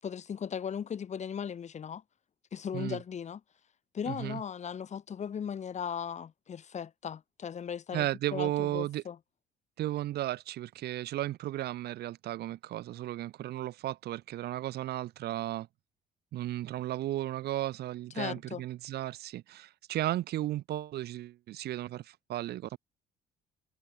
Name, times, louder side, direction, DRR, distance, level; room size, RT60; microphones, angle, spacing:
voice 1, 0.0-2.0 2.5-3.4 3.9-9.2 18.2-18.6, left 7 dB, 45° left, 5.5 m, -37 dB
voice 2, 4.1-4.4 7.9-9.0 9.8-15.7 16.3-22.8, right 14 dB, 70° right, 6.0 m, -34 dB
cardioid pair, 110°, 17 cm